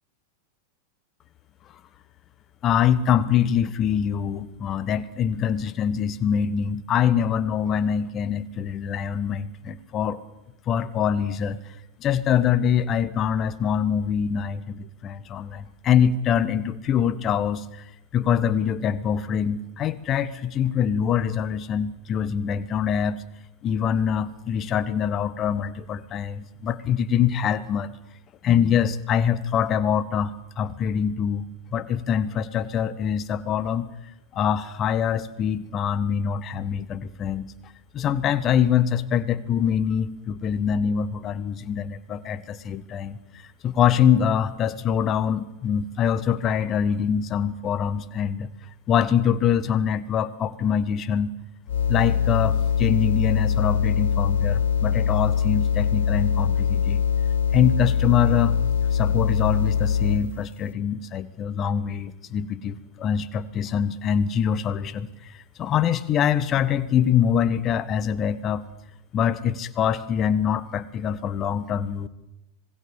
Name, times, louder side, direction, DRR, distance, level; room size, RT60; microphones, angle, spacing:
voice 1, 2.6-10.2 10.7-11.6 12.0-17.8 18.1-23.2 23.6-27.9 28.4-33.9 34.3-37.5 37.9-43.2 43.6-48.5 48.9-51.3 51.9-57.0 57.5-58.6 58.9-68.6 69.1-72.1, left 8 dB, 30° left, 14 dB, 1.5 m, -24 dB
sound 1, 51.7-60.4, left 7 dB, 60° left, 0.9 m, -23 dB
26.5 x 20.0 x 7.3 m, 0.91 s
figure-of-eight pair, 90°, 0 cm